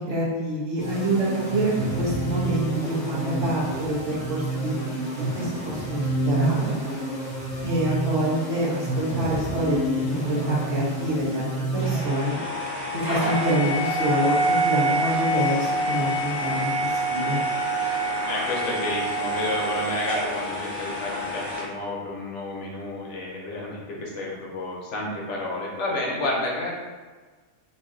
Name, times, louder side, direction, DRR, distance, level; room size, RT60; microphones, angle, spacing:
voice 1, 0.1-4.7 5.2-6.8 7.6-10.0 10.3-12.4 12.9-14.4 14.6-17.4, right 1 dB, 60° right, -6 dB, 1.2 m, -26 dB
sound 1, 0.8-12.6, right 2 dB, 40° left, 0.8 m, -28 dB
sound 2, 11.8-21.6, right 1 dB, 40° right, 0.8 m, -26 dB
voice 2, 18.3-26.8, left 2 dB, 65° left, -2 dB, 1.0 m, -30 dB
3.1 x 2.5 x 3.6 m, 1.4 s
omnidirectional pair, 1.4 m